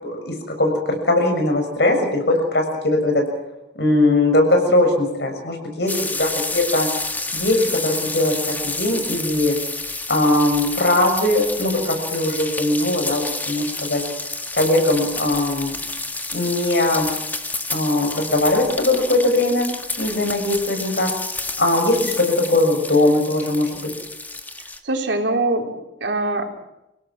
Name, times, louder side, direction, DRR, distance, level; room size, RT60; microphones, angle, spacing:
voice 1, 0.0-3.2 3.7-5.9 6.2-6.9 7.3-9.6 10.1-14.0 14.6-15.7 16.3-17.1 17.7-19.7 20.0-21.1 21.6-23.9, left 2 dB, 65° left, 4 dB, 6.7 m, -20 dB
sound 1, 5.9-24.8, left 2 dB, 10° left, 1.6 m, -30 dB
voice 2, 24.8-26.7, right 2 dB, 80° right, 3 dB, 3.8 m, -23 dB
29.0 x 17.0 x 6.2 m, 0.94 s
head